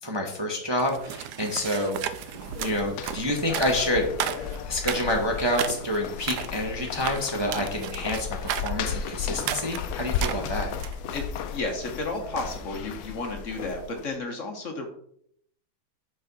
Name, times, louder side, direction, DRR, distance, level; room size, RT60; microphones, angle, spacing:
voice 1, 0.0-2.0 2.6-4.1 4.7-10.7, left 1 dB, 20° right, 0 dB, 0.8 m, -28 dB
sound 1, 0.8-11.0, right 10 dB, 80° right, 1.2 m, -34 dB
sound 2, 2.0-14.1, left 7 dB, 70° left, 1.0 m, -35 dB
voice 2, 11.1-14.9, left 2 dB, 50° left, 4 dB, 1.3 m, -32 dB
6.8 x 5.5 x 4.0 m, 0.68 s
omnidirectional pair, 1.8 m